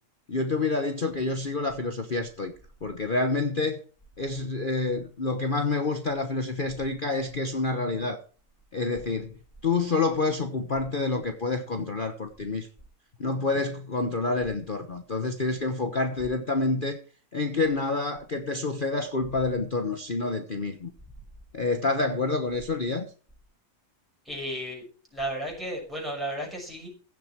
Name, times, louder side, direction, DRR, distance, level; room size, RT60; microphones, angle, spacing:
voice 1, 0.3-2.5 2.8-3.8 4.2-8.2 8.7-9.4 9.6-12.7 13.2-17.0 17.3-20.9 21.5-23.0, left 3 dB, 35° left, 1.2 m, -28 dB
voice 2, 24.2-24.8 25.1-26.9, right 1 dB, ahead, 6.3 m, -33 dB
16.0 x 7.4 x 4.7 m
omnidirectional pair, 1.7 m